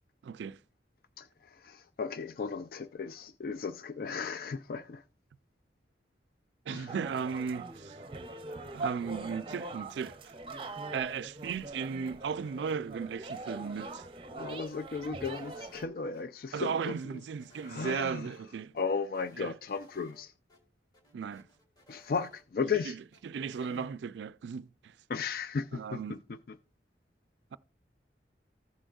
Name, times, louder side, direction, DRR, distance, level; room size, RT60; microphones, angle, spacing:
voice 1, 0.2-0.6 6.7-8.0 8.7-10.2 10.9-14.0 16.5-18.7 19.4-19.5 21.1-21.5 22.9-23.0 23.2-24.9 25.7-26.2, right 6 dB, 80° right, 0.3 m, -36 dB
voice 2, 1.2-5.0 6.7-7.0 14.3-17.2 17.6-18.3 18.7-20.3 21.9-23.0 23.7-23.9 25.1-26.6, left 5 dB, 50° left, 0.3 m, -36 dB
sound 1, 6.9-15.8, right 2 dB, 30° right, 0.6 m, -42 dB
sound 2, 15.3-16.2 16.6-18.1 18.3-18.4 18.8-20.2 20.5-20.6 20.9-22.8 23.1-23.9, left 1 dB, 20° left, 1.8 m, -62 dB
15.0 x 6.3 x 2.3 m
head